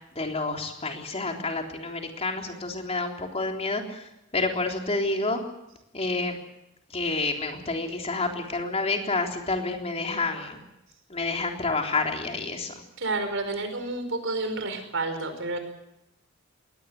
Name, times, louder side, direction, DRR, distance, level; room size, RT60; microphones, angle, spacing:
voice 1, 0.1-5.4 5.9-6.4 6.9-10.6 11.1-12.7, left 3 dB, 30° left, 3 dB, 3.6 m, -29 dB
voice 2, 13.0-15.6, right 2 dB, 65° right, 7 dB, 5.1 m, -30 dB
22.0 x 18.0 x 8.3 m, 0.86 s
head